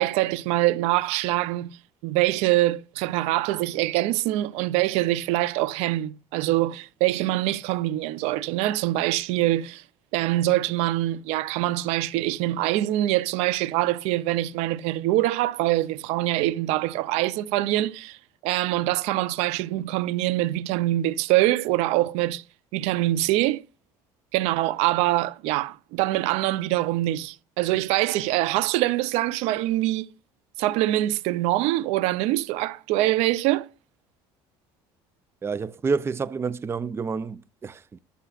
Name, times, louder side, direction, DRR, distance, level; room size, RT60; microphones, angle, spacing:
voice 1, 0.0-1.7 2.0-9.8 10.1-18.2 18.4-22.4 22.7-23.6 24.3-30.1 30.6-33.7, right 16 dB, 80° right, 0.6 m, -24 dB
voice 2, 35.4-38.0, right 5 dB, 25° right, 0.4 m, -29 dB
14.0 x 6.9 x 2.5 m
supercardioid pair, 95°, 11 cm